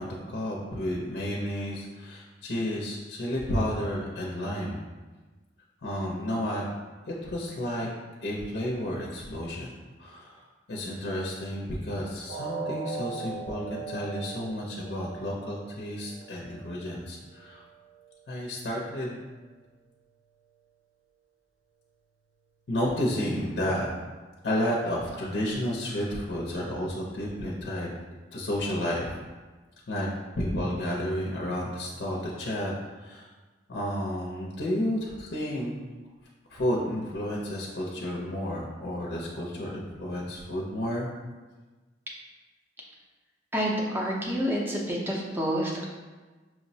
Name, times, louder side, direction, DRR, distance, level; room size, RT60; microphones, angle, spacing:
voice 1, 0.0-4.8 5.8-6.6 7.1-7.9 8.2-9.7 10.0-17.6 18.3-19.2 22.7-23.9 24.4-27.9 28.3-29.2 29.9-33.3 33.7-35.7 36.5-41.1, equal, 65° left, -3 dB, 0.5 m, -31 dB
sound 1, 12.3-18.3 18.6-18.8 19.3-19.4, right 4 dB, 55° right, 0.6 m, -40 dB
voice 2, 43.5-45.9, equal, 10° right, -3 dB, 0.5 m, -28 dB
6.0 x 2.0 x 2.7 m, 1.3 s
head